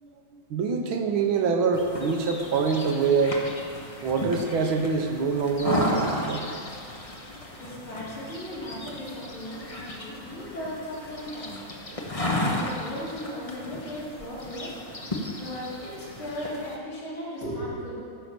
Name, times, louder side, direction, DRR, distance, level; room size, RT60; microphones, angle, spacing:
voice 1, 0.0-3.4 4.0-6.4 11.9-12.0, right 5 dB, 70° right, 4 dB, 1.8 m, -25 dB
sound 1, 1.7-16.8, left 1 dB, 25° left, 0.8 m, -34 dB
voice 2, 7.6-17.9, equal, 70° left, -9 dB, 4.0 m, -37 dB
14.5 x 5.8 x 6.7 m, 2.7 s
omnidirectional pair, 2.4 m